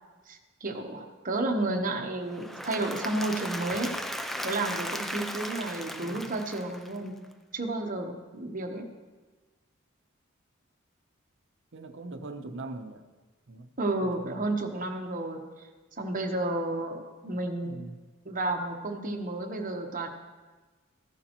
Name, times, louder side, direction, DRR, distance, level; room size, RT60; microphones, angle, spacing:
voice 1, 0.3-3.9 4.4-7.2 7.5-8.8 13.8-15.4 16.0-17.7 18.2-20.1, right 2 dB, 40° right, 3 dB, 1.1 m, -31 dB
Applause / Crowd, 2.3-7.2, equal, ahead, 0.4 m, -36 dB
voice 2, 11.7-13.1 13.5-13.7 14.0-14.5 17.6-18.0, right 2 dB, 65° right, 7 dB, 0.8 m, -42 dB
14.5 x 10.5 x 3.0 m, 1.3 s
head